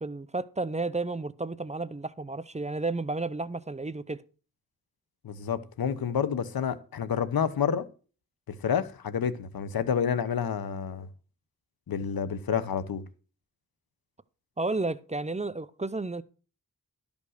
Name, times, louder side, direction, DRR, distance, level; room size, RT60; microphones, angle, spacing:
voice 1, 0.0-4.2 14.6-16.2, right 3 dB, 20° right, 0.6 m, -32 dB
voice 2, 5.2-7.8 8.5-11.1 11.9-13.0, left 7 dB, 85° left, 1.0 m, -29 dB
12.5 x 5.3 x 6.5 m
cardioid pair, 65°, 35 cm